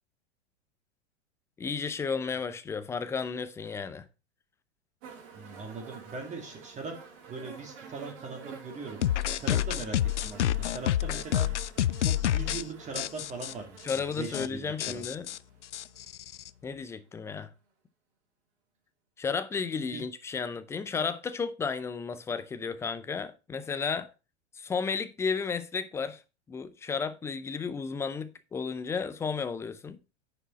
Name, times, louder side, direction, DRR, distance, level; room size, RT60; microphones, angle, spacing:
voice 1, 1.6-4.1 13.8-15.3 16.6-17.5 19.2-24.1 24.5-26.2 26.5-30.0, left 5 dB, 10° left, 0.5 m, -33 dB
sound 1, 5.0-16.1 17.0-17.1, right 6 dB, 40° right, 2.7 m, -49 dB
voice 2, 5.3-7.0 7.3-9.0 9.3-11.5 12.0-15.0 19.9-20.0, right 3 dB, 20° right, 2.1 m, -40 dB
sound 2, 9.0-12.6 13.0-13.5 13.9-14.0 14.2-14.5 14.8-16.5, left 12 dB, 75° left, 0.5 m, -28 dB
9.9 x 4.9 x 4.2 m
figure-of-eight pair, 100°, 36 cm